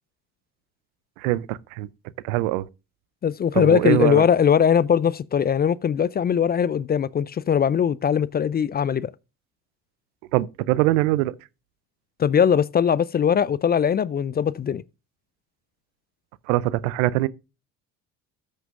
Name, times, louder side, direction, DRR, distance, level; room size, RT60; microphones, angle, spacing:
voice 1, 1.2-1.9 2.2-2.7 3.5-4.3 10.3-11.3 16.5-17.3, right 16 dB, 80° right, 0.6 m, -22 dB
voice 2, 3.2-9.1 12.2-14.8, left 8 dB, 25° left, 0.3 m, -20 dB
13.5 x 6.4 x 2.4 m
hypercardioid pair, 60°, 39 cm